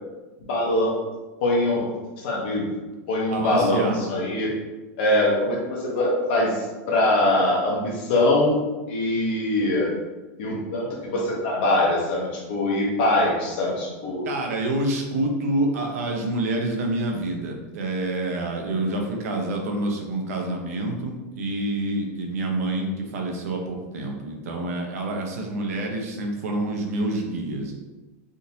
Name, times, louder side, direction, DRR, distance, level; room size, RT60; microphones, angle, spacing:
voice 1, 0.4-0.9 1.4-2.7 3.1-4.5 5.0-9.9 10.4-14.4, left 1 dB, 45° left, -3 dB, 0.7 m, -23 dB
voice 2, 3.3-4.0 14.2-27.7, right 1 dB, 85° right, 2 dB, 0.7 m, -27 dB
3.7 x 2.6 x 2.8 m, 1.2 s
supercardioid pair, 180°, 8 cm